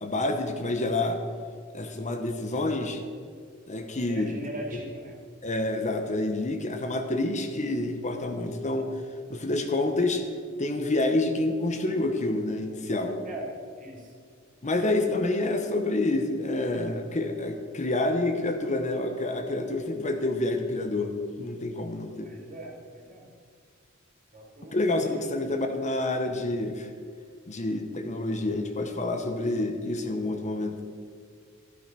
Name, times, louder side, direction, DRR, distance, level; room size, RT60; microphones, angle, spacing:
voice 1, 0.0-1.2 1.7-3.0 3.7-4.4 4.7-4.8 5.4-8.9 9.3-10.2 10.6-13.2 14.6-22.3 24.7-26.9 27.5-30.8, left 2 dB, 35° left, 5 dB, 1.0 m, -28 dB
voice 2, 4.0-5.2 13.2-13.5 13.8-14.1 22.2-23.2 24.3-24.8 25.2-25.5, right 1 dB, 40° right, -1 dB, 3.1 m, -41 dB
12.0 x 12.0 x 6.1 m, 2.1 s
head